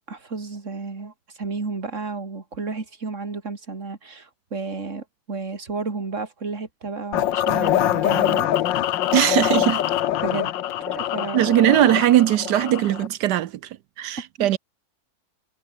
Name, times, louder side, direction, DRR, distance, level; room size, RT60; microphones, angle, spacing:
voice 1, 0.0-8.5 10.2-10.5 10.9-11.4 14.4-14.6, right 4 dB, 40° right, 3.1 m, -32 dB
sound 1, 7.1-13.1, left 12 dB, 75° left, 1.6 m, -24 dB
voice 2, 9.1-9.8 11.3-14.6, right 13 dB, 70° right, 1.2 m, -20 dB
omnidirectional pair, 2.0 m